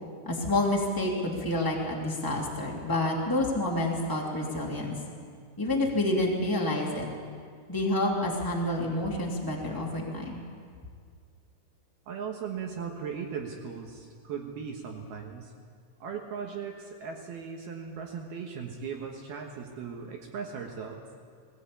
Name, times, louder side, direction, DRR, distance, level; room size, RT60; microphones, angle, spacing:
voice 1, 0.2-4.9 5.6-7.1 7.7-10.4, left 1 dB, 15° left, -2 dB, 0.8 m, -28 dB
voice 2, 12.1-15.5 16.0-21.1, right 6 dB, 65° right, 2 dB, 2.7 m, -38 dB
21.0 x 16.0 x 8.6 m, 2.1 s
omnidirectional pair, 5.8 m